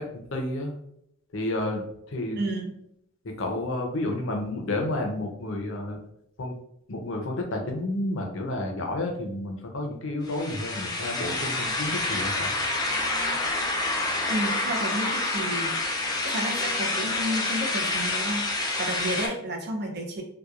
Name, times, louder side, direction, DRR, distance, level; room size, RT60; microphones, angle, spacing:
voice 1, 0.3-0.7 1.3-2.4 3.2-6.0 6.4-6.6 6.9-12.5, left 1 dB, 65° left, 2 dB, 0.6 m, -30 dB
voice 2, 2.4-2.7 14.3-15.7 16.2-20.2, right 1 dB, 50° right, 1 dB, 0.5 m, -31 dB
sound 1, 10.2-19.3, left 2 dB, 20° left, 0.3 m, -28 dB
2.8 x 2.2 x 2.3 m, 0.74 s
head